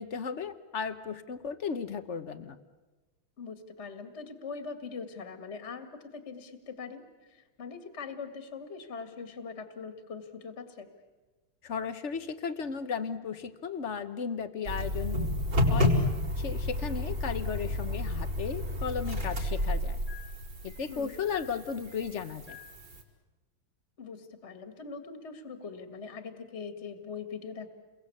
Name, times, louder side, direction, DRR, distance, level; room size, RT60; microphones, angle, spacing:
voice 1, 0.0-2.6 11.6-15.3 15.7-15.9 16.4-20.0 20.6-22.6, left 6 dB, 50° left, 11 dB, 0.9 m, -35 dB
voice 2, 3.4-10.9 20.9-21.2 24.0-27.7, left 5 dB, 30° left, 7 dB, 2.0 m, -42 dB
sound 1, 14.6-23.0, left 1 dB, 50° right, 5.5 m, -31 dB
29.0 x 22.5 x 8.5 m, 1.2 s
omnidirectional pair, 2.4 m